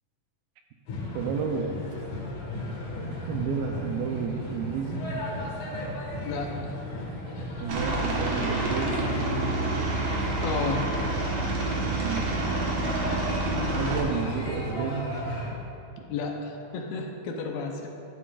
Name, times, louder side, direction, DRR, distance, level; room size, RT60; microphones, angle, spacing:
sound 1, 0.9-15.5, left 1 dB, 60° left, 2.8 m, -35 dB
voice 1, 1.1-1.7 3.3-5.0 7.6-9.1 12.0-13.2 13.7-15.1, right 6 dB, 80° right, 3 dB, 2.3 m, -32 dB
voice 2, 6.2-6.8 10.4-10.9 16.1-17.9, left 4 dB, 80° left, 2 dB, 2.5 m, -32 dB
Aircraft, 7.7-14.0, right 2 dB, 60° right, 1.9 m, -28 dB
12.5 x 11.5 x 2.5 m, 2.7 s
omnidirectional pair, 4.4 m